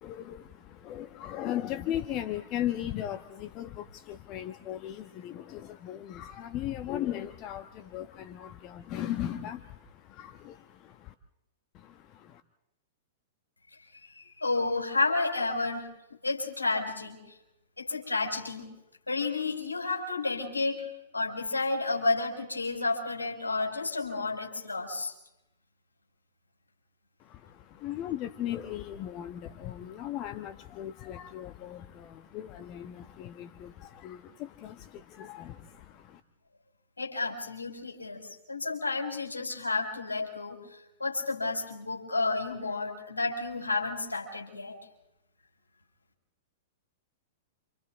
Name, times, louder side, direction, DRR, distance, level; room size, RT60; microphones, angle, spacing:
voice 1, 0.0-11.1 11.7-12.4 27.2-36.2, left 12 dB, 40° left, 10 dB, 1.1 m, -37 dB
voice 2, 13.8-15.9 16.2-17.4 17.8-18.7 19.1-25.1 37.0-44.8, left 3 dB, 85° left, 1 dB, 5.0 m, -31 dB
29.0 x 27.5 x 3.6 m, 0.91 s
figure-of-eight pair, 105°, 0 cm